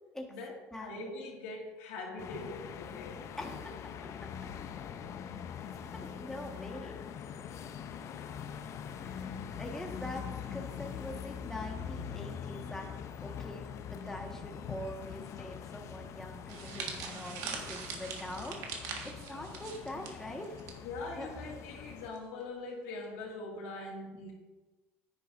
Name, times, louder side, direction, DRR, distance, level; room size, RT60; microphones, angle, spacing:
voice 1, 0.3-3.3 7.8-8.4 20.8-24.3, left 2 dB, 85° left, -1 dB, 2.1 m, -42 dB
sound 1, 2.2-22.1, left 8 dB, 50° left, 0.6 m, -43 dB
voice 2, 3.4-3.7 5.8-7.0 9.0-10.3 10.5-12.9 13.2-13.6 13.9-18.6 19.0-20.5 21.2-21.3, left 1 dB, 5° left, 1 dB, 1.4 m, -43 dB
sound 2, 16.5-20.7 21.0-21.3 22.1-22.4, right 5 dB, 65° right, 1.6 m, -42 dB
10.0 x 9.6 x 2.6 m, 1.2 s
supercardioid pair, 95°, 7 cm